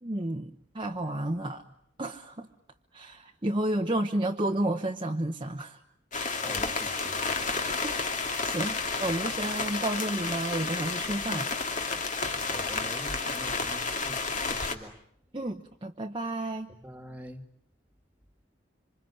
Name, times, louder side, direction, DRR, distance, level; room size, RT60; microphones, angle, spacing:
voice 1, 0.0-1.6 2.0-2.5 2.9-5.8 7.6-8.0 8.4-11.5 15.3-16.7, right 1 dB, 25° right, 2 dB, 1.1 m, -31 dB
sound 1, 6.1-14.7, left 4 dB, 40° left, 2.5 m, -31 dB
voice 2, 6.4-7.3 12.5-15.0 16.7-17.4, equal, 10° right, 7 dB, 2.2 m, -45 dB
26.5 x 26.0 x 8.5 m, 0.70 s
head